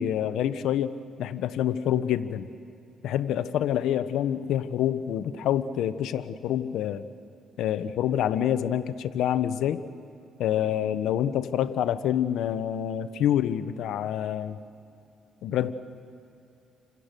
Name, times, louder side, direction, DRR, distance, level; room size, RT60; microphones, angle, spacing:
voice 1, 0.0-2.5 3.0-7.0 7.6-9.8 10.4-14.6 15.4-15.7, left 10 dB, 80° left, 13 dB, 0.9 m, -27 dB
29.5 x 26.0 x 6.8 m, 2.7 s
cardioid pair, 90°, 0 cm